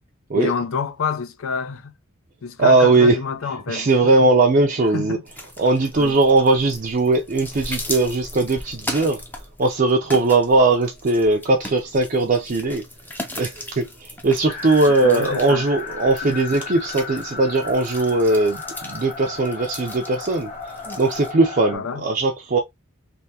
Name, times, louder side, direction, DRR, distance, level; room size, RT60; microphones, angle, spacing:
voice 1, 0.3-1.9 2.4-3.9 4.2-4.3 4.9-5.2 6.0-6.2 14.8-15.7 16.2-16.3 21.7-22.0, left 5 dB, 70° left, 0.5 m, -28 dB
voice 2, 2.6-3.2 3.7-5.2 5.6-9.2 9.6-12.8 13.4-20.5 21.0-22.6, right 3 dB, 40° right, 0.5 m, -19 dB
sound 1, 5.3-21.3, left 1 dB, 10° left, 0.6 m, -37 dB
sound 2, 14.5-21.8, left 5 dB, 30° left, 1.4 m, -35 dB
3.4 x 2.7 x 2.6 m
head